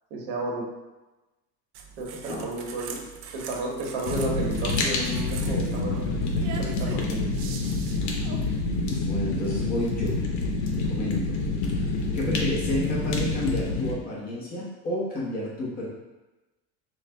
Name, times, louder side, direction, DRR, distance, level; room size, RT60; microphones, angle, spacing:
voice 1, 0.1-0.7 2.0-3.0 3.3-7.2, right 2 dB, 85° right, -2 dB, 1.2 m, -32 dB
sound 1, 1.7-9.0, right 6 dB, 40° right, 0.4 m, -42 dB
Fire, 4.1-13.9, left 3 dB, 85° left, 0.8 m, -27 dB
voice 2, 8.4-10.2 10.7-11.4 11.7-15.9, left 1 dB, 25° left, -6 dB, 1.0 m, -31 dB
4.8 x 2.2 x 3.4 m, 1.1 s
cardioid pair, 165°, 33 cm